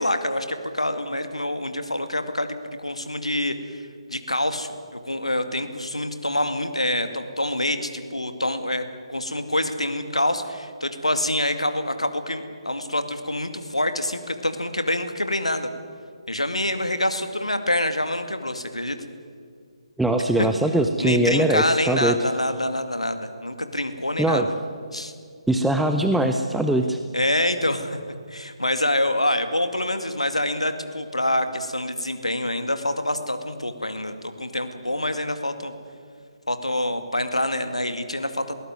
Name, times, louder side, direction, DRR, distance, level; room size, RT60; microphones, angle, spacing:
voice 1, 0.0-3.8 4.1-4.7 5.0-15.7 16.3-19.0 20.4-20.5 21.0-24.5 24.9-25.1 27.1-28.0 28.3-35.7 36.5-38.4, left 1 dB, 80° left, 9 dB, 2.2 m, -26 dB
voice 2, 20.0-22.2 24.2-24.5 25.5-27.0, right 1 dB, ahead, 5 dB, 0.7 m, -21 dB
20.5 x 18.5 x 9.6 m, 2.1 s
figure-of-eight pair, 145°, 3 cm